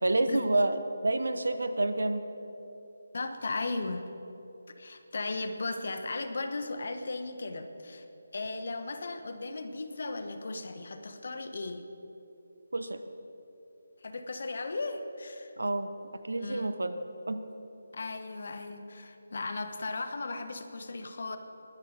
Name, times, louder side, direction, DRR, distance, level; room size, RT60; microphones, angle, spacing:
voice 1, 0.0-2.2 12.7-13.0 15.6-15.9 16.2-17.0 17.3-17.4, right 2 dB, 90° right, 10 dB, 1.0 m, -28 dB
voice 2, 3.1-4.1 4.8-8.0 8.3-11.8 14.0-15.5 16.4-16.7 17.9-21.4, left 3 dB, 60° left, 7 dB, 1.2 m, -36 dB
20.5 x 10.5 x 4.0 m, 3.0 s
figure-of-eight pair, 165°, 0 cm